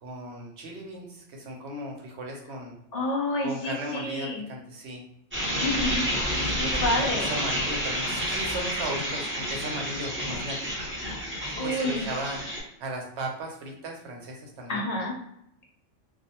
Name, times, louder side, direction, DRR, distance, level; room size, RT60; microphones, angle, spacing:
voice 1, 0.0-2.8 3.4-5.0 6.3-10.7 11.5-12.4 12.8-14.9, right 1 dB, 65° right, 1 dB, 0.9 m, -36 dB
voice 2, 2.9-4.4 5.6-6.0 6.6-7.3 11.6-12.1 14.7-15.1, left 1 dB, 60° left, -1 dB, 0.4 m, -29 dB
sound 1, 5.3-12.6, equal, 10° right, 0.7 m, -30 dB
2.5 x 2.0 x 2.8 m, 0.77 s
omnidirectional pair, 1.3 m